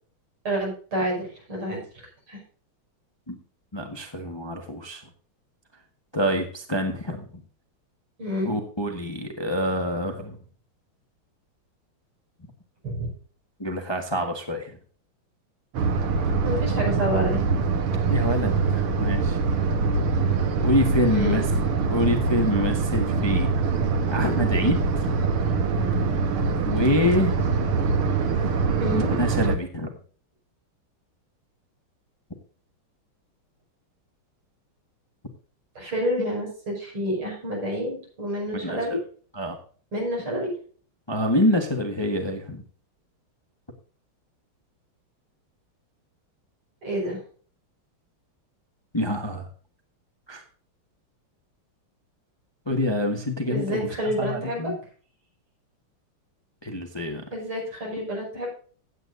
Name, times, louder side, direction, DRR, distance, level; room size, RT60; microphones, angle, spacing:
voice 1, 0.5-2.4 8.2-8.5 12.8-13.1 16.4-17.4 21.1-21.7 28.8-29.1 35.8-39.0 39.9-40.5 46.8-47.2 53.5-54.7 57.3-58.5, equal, 75° right, -2 dB, 6.9 m, -29 dB
voice 2, 3.7-5.0 6.1-7.3 8.4-10.4 13.6-14.7 18.1-19.4 20.6-21.4 21.9-23.5 24.1-25.3 26.6-27.5 28.9-29.9 38.6-39.0 39.3-39.6 41.1-42.6 48.9-49.5 50.3-50.4 52.7-53.9 54.2-54.8 56.6-57.2, left 1 dB, 15° left, 4 dB, 1.2 m, -26 dB
sound 1, 15.7-29.6, right 4 dB, 90° right, 2.1 m, -24 dB
16.0 x 9.0 x 2.6 m, 0.43 s
omnidirectional pair, 2.4 m